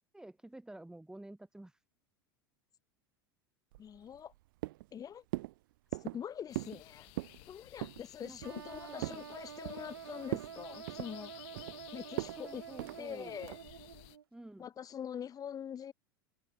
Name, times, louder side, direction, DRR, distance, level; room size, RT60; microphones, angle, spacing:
voice 1, 0.1-1.8 8.2-8.4 8.9-9.3 12.4-13.4 14.3-14.7, right 1 dB, 5° right, 7.8 m, -50 dB
sound 1, 3.7-4.4 4.6-5.0 5.3-5.5 5.9-6.2 6.5-6.8 7.1-7.4 7.8-8.0 8.4-9.2 9.6-10.0 10.3-10.5 10.9-11.8 12.2-12.4 12.8-13.0 13.4-13.7, right 19 dB, 65° right, 0.5 m, -39 dB
voice 2, 3.8-4.3 4.9-5.2 6.0-7.1 7.5-11.3 11.9-12.6 13.0-13.6 14.6-15.9, left 9 dB, 30° left, 2.5 m, -44 dB
sound 2, 6.5-14.2, left 30 dB, 55° left, 2.6 m, -56 dB
sound 3, 8.4-14.2, right 8 dB, 85° right, 2.1 m, -48 dB
hypercardioid pair, 90°, 12 cm